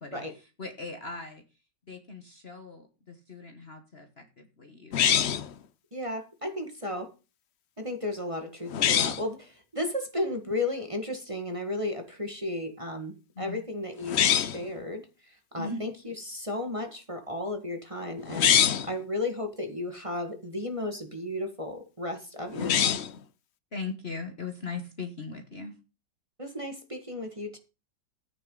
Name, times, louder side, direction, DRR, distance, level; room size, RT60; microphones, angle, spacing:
voice 1, 0.0-1.4 1.9-5.2 13.3-13.6 15.6-15.8 22.6-22.7 23.7-25.8, left 4 dB, 35° left, 6 dB, 1.4 m, -39 dB
sound 1, 4.9-5.5 8.7-9.2 14.0-14.7 18.3-18.9 22.5-23.2, left 9 dB, 60° left, 0.7 m, -24 dB
voice 2, 5.9-7.1 7.8-15.0 15.5-18.5 18.8-22.9 26.4-27.6, left 1 dB, 20° right, 4 dB, 1.7 m, -34 dB
14.0 x 9.5 x 3.9 m, 0.30 s
omnidirectional pair, 1.9 m